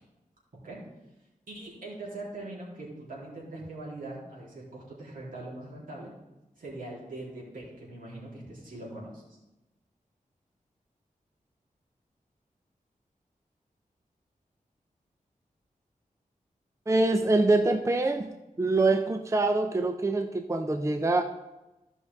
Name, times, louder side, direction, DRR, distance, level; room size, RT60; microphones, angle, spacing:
voice 1, 1.5-6.1 6.6-9.4, right 2 dB, 75° right, -5 dB, 3.3 m, -41 dB
voice 2, 16.9-18.3 18.6-21.2, right 2 dB, 20° right, 7 dB, 0.5 m, -24 dB
14.5 x 5.5 x 3.5 m, 1.0 s
wide cardioid pair, 95°, 14 cm